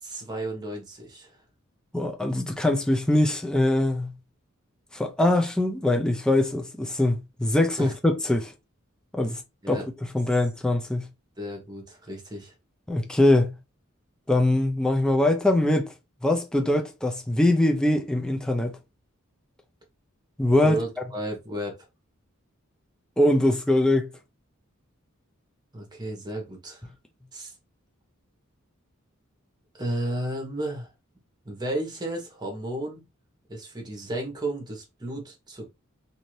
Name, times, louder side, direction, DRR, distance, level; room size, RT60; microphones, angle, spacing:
voice 1, 0.0-1.4 7.8-7.9 9.6-9.8 11.4-12.5 20.6-21.9 25.7-26.9 27.3-27.5 29.7-30.9 31.4-33.0 33.5-35.7, right 1 dB, 20° right, 1.1 m, -33 dB
voice 2, 1.9-4.1 4.9-8.5 9.1-9.4 9.7-9.8 10.1-11.1 12.9-13.5 14.3-15.9 16.2-18.8 20.4-20.8 23.2-24.1, left 1 dB, 5° left, 0.4 m, -22 dB
2.7 x 2.6 x 3.1 m
head